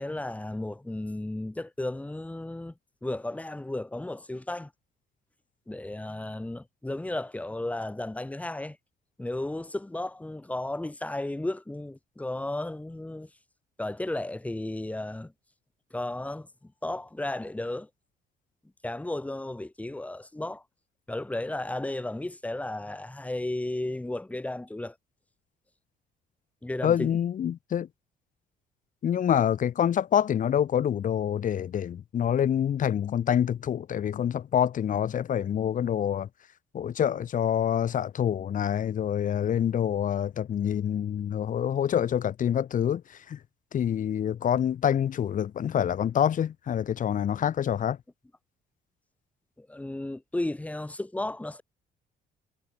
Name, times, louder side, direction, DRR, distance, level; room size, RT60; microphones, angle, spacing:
voice 1, 0.0-2.7 3.0-4.7 5.7-8.8 9.2-13.3 13.8-15.3 15.9-17.9 18.8-20.6 21.1-25.0 26.6-27.2 49.6-51.6, left 1 dB, 10° left, 4.0 m, -34 dB
voice 2, 26.8-27.9 29.0-36.3 36.7-43.4 43.7-48.0, left 9 dB, 50° left, 3.5 m, -26 dB
cardioid pair, 110°, 17 cm